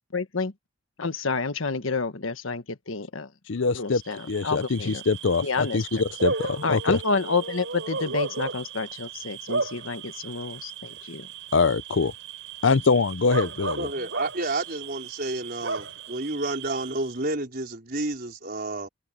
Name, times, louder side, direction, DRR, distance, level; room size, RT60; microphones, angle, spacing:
voice 1, 0.1-0.5 1.0-3.3 3.7-5.0 5.4-5.9 6.6-11.3, left 4 dB, 85° left, 1.4 m, -29 dB
voice 2, 3.5-4.0 4.3-7.0 11.5-12.1 12.6-13.9, left 4 dB, 65° left, 0.6 m, -23 dB
Bark / Cricket, 4.0-17.3, right 4 dB, 70° right, 4.7 m, -35 dB
voice 3, 13.8-18.9, right 2 dB, 50° right, 4.6 m, -30 dB
head